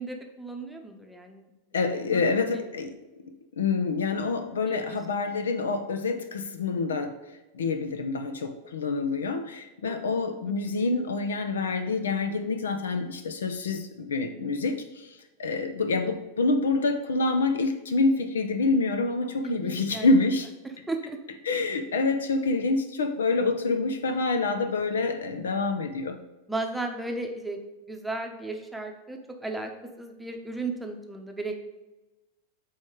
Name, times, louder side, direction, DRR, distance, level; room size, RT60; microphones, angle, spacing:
voice 1, 0.0-1.4 1.8-2.2 2.5-2.6 4.7-5.0 9.8-10.0 19.4-20.1 20.9-21.2 26.5-27.6 27.9-29.7 30.0-31.7, right 2 dB, 5° right, 2 dB, 0.9 m, -35 dB
voice 2, 1.7-3.0 3.6-7.1 7.5-14.8 15.4-20.5 21.4-26.2, left 3 dB, 65° left, 8 dB, 0.6 m, -27 dB
8.4 x 3.2 x 4.7 m, 1.1 s
figure-of-eight pair, 90°, 0 cm